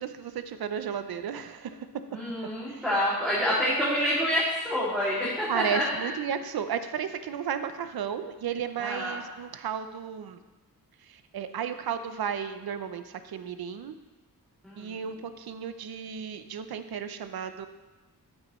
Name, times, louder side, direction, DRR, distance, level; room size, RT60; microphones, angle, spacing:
voice 1, 0.0-1.9 2.7-2.8 5.5-10.4 11.0-13.9 14.8-17.7, right 8 dB, 75° right, 10 dB, 0.7 m, -33 dB
voice 2, 2.1-6.1 8.8-9.2 14.6-15.0, equal, ahead, -10 dB, 2.6 m, -27 dB
8.8 x 8.7 x 3.1 m, 1.2 s
wide cardioid pair, 85°, 37 cm